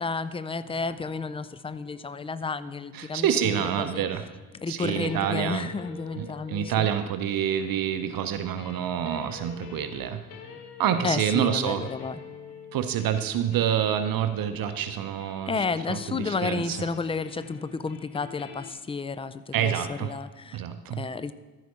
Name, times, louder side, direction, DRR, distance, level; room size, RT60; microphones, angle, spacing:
voice 1, 0.0-4.0 4.6-6.9 11.0-12.2 15.5-20.6 20.9-21.3, left 4 dB, 15° left, 14 dB, 0.4 m, -32 dB
sound 1, 0.6-18.7, left 7 dB, 90° left, 0.7 m, -47 dB
voice 2, 2.9-4.3 4.7-5.7 6.2-10.2 10.8-11.9 12.7-16.8 19.5-20.1 20.5-21.1, right 9 dB, 50° right, 10 dB, 0.7 m, -27 dB
13.5 x 5.0 x 4.1 m, 1.3 s
hypercardioid pair, 45°, 45 cm